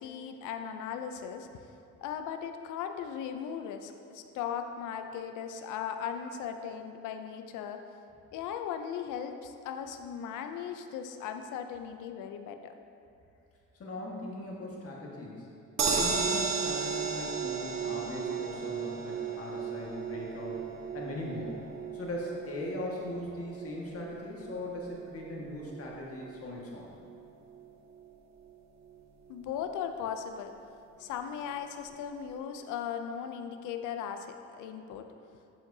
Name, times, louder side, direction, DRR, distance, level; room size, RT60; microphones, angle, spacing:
voice 1, 0.0-1.7 2.0-7.8 8.3-12.8 29.3-30.5 31.0-35.1, left 8 dB, 90° left, 7 dB, 0.5 m, -38 dB
voice 2, 13.7-15.5 16.0-20.6 20.9-21.6 21.9-26.9, left 1 dB, 50° left, -3 dB, 1.7 m, -39 dB
sound 1, 15.8-28.0 28.4-28.5 28.8-28.9, right 5 dB, 65° right, 1.1 m, -35 dB
7.8 x 7.7 x 2.7 m, 2.6 s
cardioid pair, 90°, 30 cm